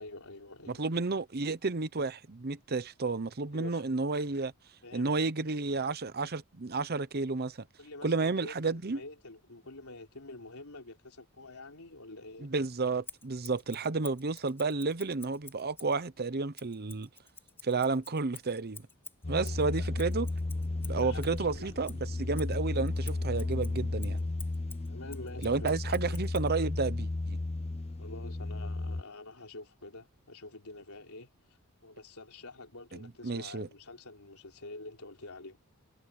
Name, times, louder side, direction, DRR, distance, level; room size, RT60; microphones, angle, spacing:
voice 1, 0.0-0.8 3.5-3.9 4.8-5.3 7.8-12.5 19.2-19.9 20.8-21.7 24.9-25.7 26.0-26.2 28.0-31.3 31.8-35.6, left 2 dB, 75° left, 4.0 m, -47 dB
voice 2, 0.7-4.5 4.9-7.6 8.0-9.0 12.4-17.1 17.6-18.9 19.3-20.3 20.9-24.2 25.4-27.4 32.9-33.7, right 3 dB, 45° right, 0.8 m, -31 dB
Scissors, 13.0-16.0 16.5-21.4 21.8-26.5, left 4 dB, 10° left, 3.2 m, -51 dB
sound 1, 19.2-29.0, left 2 dB, 30° left, 0.7 m, -34 dB
head